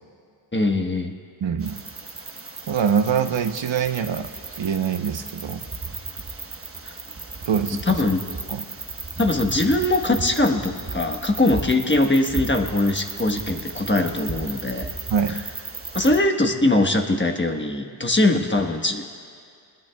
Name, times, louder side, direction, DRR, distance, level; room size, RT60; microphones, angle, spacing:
voice 1, 0.5-1.1 6.8-6.9 7.9-8.2 9.2-14.9 15.3-15.4 15.9-19.0, left 2 dB, 25° left, 3 dB, 1.3 m, -21 dB
voice 2, 1.4-1.8 2.7-4.3 4.6-5.6 7.5-7.8 8.5-8.6 15.1-15.4, right 7 dB, 75° right, 7 dB, 0.9 m, -24 dB
sound 1, 1.6-16.2, right 3 dB, 30° right, 1.1 m, -35 dB
28.5 x 21.0 x 2.3 m, 2.3 s
wide cardioid pair, 95°, 45 cm